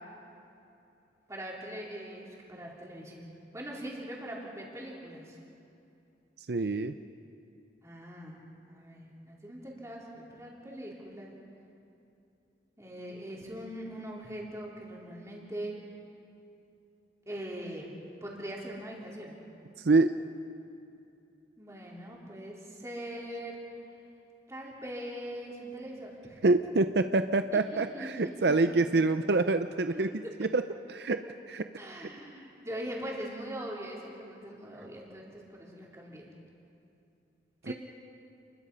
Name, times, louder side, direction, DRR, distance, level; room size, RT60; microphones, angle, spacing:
voice 1, 1.3-5.4 7.8-11.3 12.8-15.7 17.3-17.9 18.2-19.4 21.6-23.6 24.5-26.4 27.7-28.3 29.9-30.3 31.8-36.3 37.6-37.7, right 1 dB, 15° right, -4 dB, 4.0 m, -41 dB
voice 2, 6.5-6.9 19.8-20.1 26.4-30.1 30.4-30.6 30.9-31.2 31.5-31.6 32.0-32.1 37.7-37.8, right 3 dB, 70° right, 9 dB, 0.6 m, -26 dB
29.5 x 21.5 x 5.6 m, 2.7 s
head